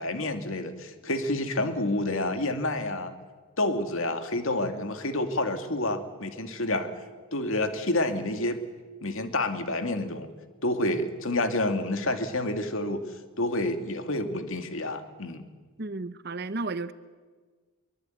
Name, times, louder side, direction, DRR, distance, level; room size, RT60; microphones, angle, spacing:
voice 1, 0.0-3.1 3.6-6.9 7.3-8.6 9.0-10.3 10.6-13.0 13.4-15.4, left 2 dB, 65° left, 2.4 m, -29 dB
voice 2, 15.8-16.9, right 3 dB, 45° right, 0.9 m, -33 dB
23.5 x 23.5 x 9.3 m
head